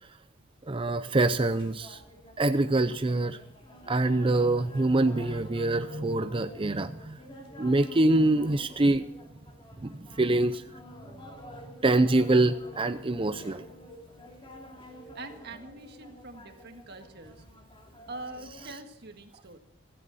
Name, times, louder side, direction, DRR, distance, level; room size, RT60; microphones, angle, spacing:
voice 1, 0.7-2.0 2.4-3.4 3.9-7.2 7.6-9.1 9.8-10.6 11.8-13.6, right 2 dB, 25° right, 10 dB, 0.5 m, -25 dB
sound 1, 1.1-18.7, equal, 25° left, 2.9 m, -49 dB
voice 2, 15.1-17.4 18.1-19.6, right 2 dB, 50° right, 6 dB, 1.7 m, -44 dB
16.0 x 14.5 x 4.1 m, 0.78 s
head